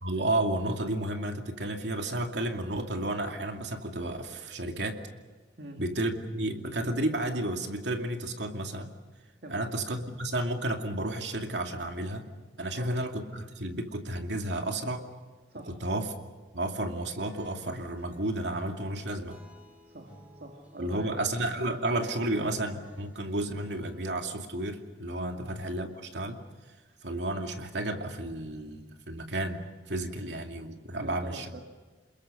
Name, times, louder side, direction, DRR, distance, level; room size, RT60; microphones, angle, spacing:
voice 1, 0.0-5.0 5.8-8.9 9.5-12.3 12.6-15.0 15.6-16.1 16.5-19.4 20.8-26.4 27.0-31.5, right 1 dB, 85° right, 4 dB, 2.6 m, -32 dB
voice 2, 9.4-9.7 12.7-13.0 15.5-15.8 19.9-21.4 25.3-25.6 31.0-31.6, right 1 dB, 65° right, 3 dB, 2.3 m, -45 dB
Acoustic guitar / Strum, 17.2-24.4, equal, 10° right, 5.7 m, -53 dB
28.5 x 21.5 x 6.5 m, 1.4 s
head